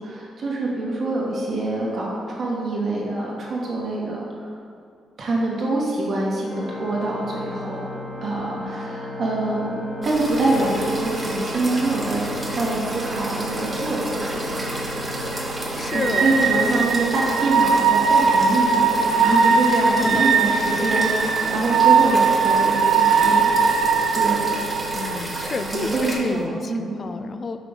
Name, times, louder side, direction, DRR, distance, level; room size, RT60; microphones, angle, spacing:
voice 1, 0.0-4.5 5.2-7.8 8.2-12.2 12.5-14.7 15.9-23.5 24.1-24.6 25.7-27.0, right 2 dB, 60° right, -4 dB, 1.6 m, -25 dB
Organ, 6.4-17.6, left 1 dB, 70° left, 1.4 m, -34 dB
voice 2, 8.4-8.7 15.7-16.4 20.0-20.3 20.7-20.8 24.9-27.6, left 4 dB, 45° left, 8 dB, 0.3 m, -31 dB
sound 1, 10.0-26.2, right 1 dB, 20° right, 1.4 m, -32 dB
sound 2, 10.5-26.4, right 5 dB, 75° right, 0.5 m, -22 dB
5.8 x 3.8 x 5.5 m, 2.3 s
cardioid pair, 70°, 0 cm